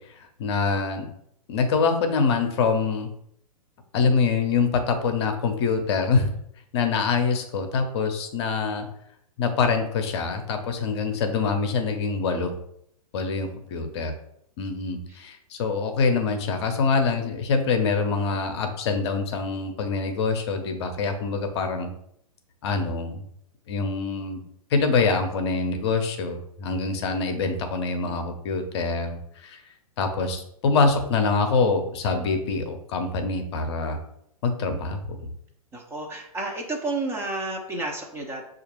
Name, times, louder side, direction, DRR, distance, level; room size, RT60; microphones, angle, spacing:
voice 1, 0.1-1.1 1.5-3.1 3.9-6.3 6.7-8.9 9.4-12.6 13.1-14.1 14.6-21.9 22.6-23.2 23.7-24.4 24.7-29.6 30.0-34.0 34.4-35.3, left 4 dB, 45° left, 5 dB, 0.7 m, -25 dB
voice 2, 35.7-38.5, right 2 dB, 10° right, 0 dB, 0.6 m, -31 dB
6.4 x 2.4 x 3.0 m, 0.73 s
figure-of-eight pair, 110°, 20 cm